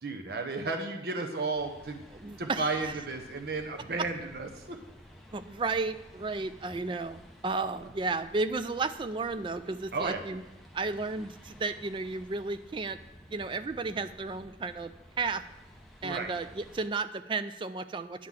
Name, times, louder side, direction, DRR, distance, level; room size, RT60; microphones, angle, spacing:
voice 1, 0.0-2.0 2.4-4.8 9.9-10.2 16.0-16.3, right 3 dB, 55° right, 4 dB, 0.7 m, -33 dB
sound 1, 1.5-16.9, equal, ahead, 0.7 m, -53 dB
voice 2, 2.1-3.0 5.3-10.4 10.7-13.0 13.3-14.9 15.2-15.4 16.0-18.3, right 3 dB, 25° right, 12 dB, 0.3 m, -33 dB
9.6 x 3.8 x 7.3 m, 0.97 s
head